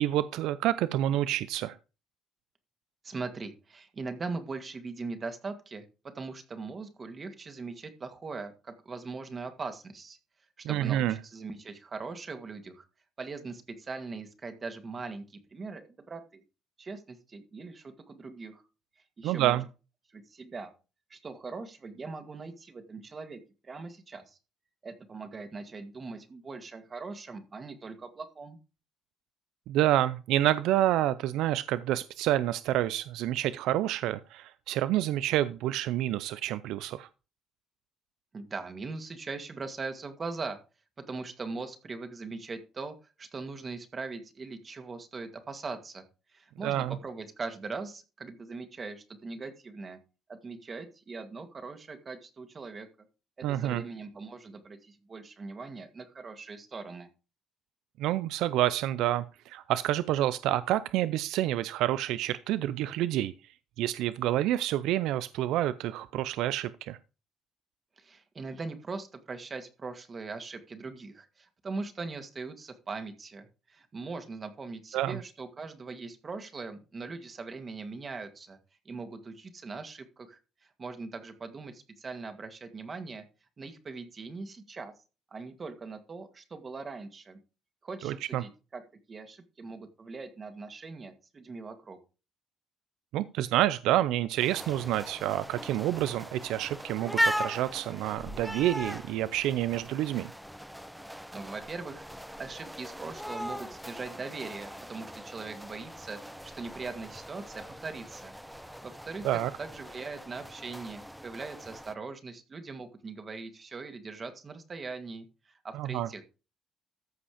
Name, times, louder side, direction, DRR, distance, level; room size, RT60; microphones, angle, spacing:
voice 1, 0.0-1.8 10.6-11.2 19.2-19.6 29.7-37.1 46.6-47.0 53.4-53.8 58.0-63.3 63.8-67.0 74.9-75.2 88.0-88.4 93.1-100.3 109.2-109.5 115.7-116.1, right 13 dB, 85° right, 16 dB, 0.4 m, -28 dB
voice 2, 3.0-5.8 6.1-10.2 10.7-12.9 13.2-16.4 16.8-18.6 19.2-19.6 20.1-20.7 21.1-24.4 24.8-28.6 38.3-40.6 41.1-46.0 46.3-50.0 50.3-52.9 53.4-57.1 68.0-78.6 78.9-80.4 80.8-83.2 83.6-84.9 85.3-87.4 87.8-88.8 89.1-92.0 101.3-106.2 106.5-109.3 109.6-116.2, right 4 dB, 35° right, 8 dB, 2.0 m, -41 dB
sound 1, 94.4-111.9, equal, ahead, 0.8 m, -39 dB
14.0 x 5.1 x 5.0 m, 0.32 s
cardioid pair, 90°, 0 cm